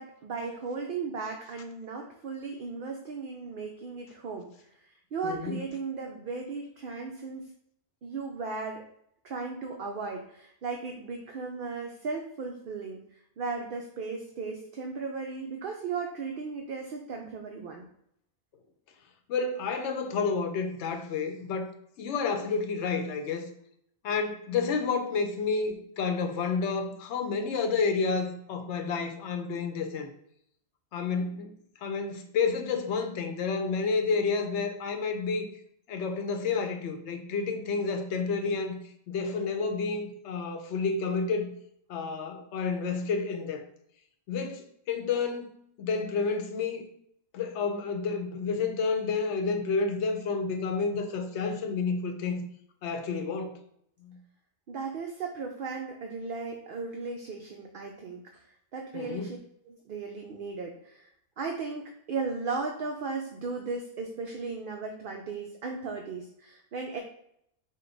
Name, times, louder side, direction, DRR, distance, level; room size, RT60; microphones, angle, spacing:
voice 1, 0.0-4.5 5.1-7.5 8.0-8.8 9.2-13.0 13.4-17.9 54.7-59.4 59.7-61.1 61.4-67.0, right 4 dB, 60° right, 2 dB, 0.6 m, -36 dB
voice 2, 5.2-5.6 19.3-21.7 22.0-23.5 24.0-30.1 30.9-31.5 31.8-35.5 35.9-38.8 39.1-41.5 41.9-43.6 44.3-46.8 47.3-52.4 52.8-53.6 54.0-54.2 58.9-59.4, left 4 dB, 75° left, 5 dB, 0.9 m, -30 dB
5.2 x 2.2 x 3.9 m, 0.71 s
omnidirectional pair, 1.2 m